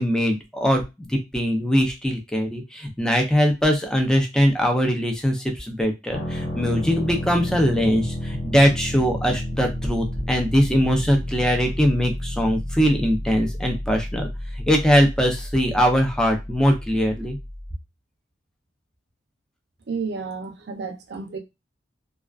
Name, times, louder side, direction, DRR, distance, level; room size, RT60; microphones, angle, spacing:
voice 1, 0.0-17.4, equal, 5° left, 0.5 m, -21 dB
sound 1, 6.1-17.7, equal, 50° left, 1.0 m, -31 dB
voice 2, 19.9-21.4, right 5 dB, 60° right, 0.5 m, -31 dB
2.3 x 2.3 x 2.3 m
head